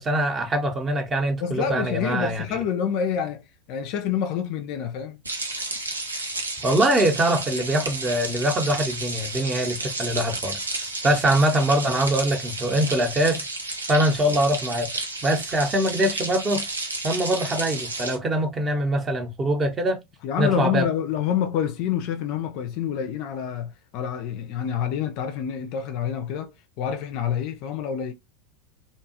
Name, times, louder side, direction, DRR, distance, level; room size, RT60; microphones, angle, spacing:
voice 1, 0.0-2.4 6.6-10.6 11.0-13.5 13.9-14.9 15.2-16.6 17.0-20.0 20.4-20.8, right 1 dB, 20° right, 0.7 m, -23 dB
voice 2, 1.4-5.2 20.2-28.1, left 8 dB, 50° left, 0.4 m, -27 dB
sound 1, 5.2-18.2, right 2 dB, 80° right, 0.6 m, -32 dB
2.7 x 2.3 x 2.6 m
figure-of-eight pair, 80°, 0 cm